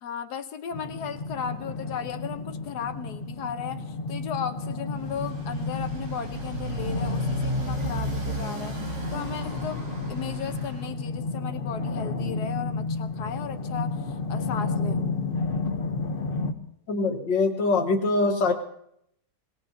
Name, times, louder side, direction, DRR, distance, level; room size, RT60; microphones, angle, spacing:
voice 1, 0.0-8.8 9.1-9.8 10.1-14.0 14.3-15.0, left 7 dB, 70° left, 9 dB, 1.5 m, -35 dB
sound 1, 0.7-16.5, left 3 dB, 40° left, 0.9 m, -32 dB
Motorcycle, 4.9-10.9, right 1 dB, 60° right, 3.4 m, -33 dB
voice 2, 16.9-18.5, left 3 dB, 90° left, 5 dB, 2.1 m, -23 dB
21.0 x 20.0 x 2.8 m, 0.75 s
omnidirectional pair, 1.9 m